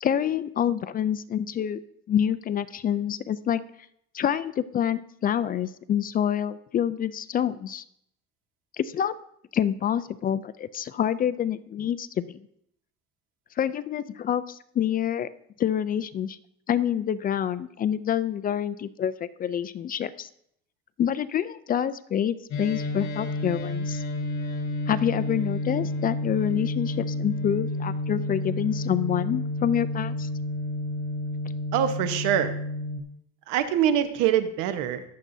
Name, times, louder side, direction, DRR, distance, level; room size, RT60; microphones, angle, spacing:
voice 1, 0.0-1.8 2.1-3.6 4.1-7.8 8.8-9.2 9.5-12.4 13.6-15.3 15.6-16.4 16.7-20.3 21.0-24.0 24.9-30.3, left 9 dB, 30° left, 14 dB, 0.4 m, -27 dB
sound 1, 22.5-33.0, left 1 dB, 65° left, 3.8 m, -30 dB
voice 2, 31.7-32.5 33.5-35.0, right 10 dB, 85° right, 9 dB, 1.1 m, -24 dB
21.5 x 7.4 x 2.7 m, 0.72 s
cardioid pair, 135°, 30 cm